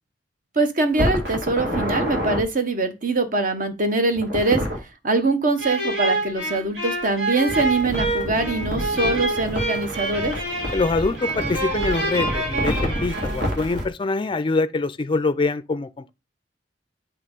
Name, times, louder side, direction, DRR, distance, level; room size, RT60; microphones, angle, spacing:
voice 1, 0.5-4.6 5.0-10.3, right 3 dB, 50° right, 1.0 m, -23 dB
sound 1, 0.9-2.4 4.1-4.8 7.5-13.9, equal, 65° right, 2.3 m, -28 dB
sound 2, 5.6-13.6, right 1 dB, 85° right, 2.1 m, -27 dB
voice 2, 10.7-16.1, left 3 dB, 30° left, 0.4 m, -24 dB
8.5 x 3.0 x 5.2 m
head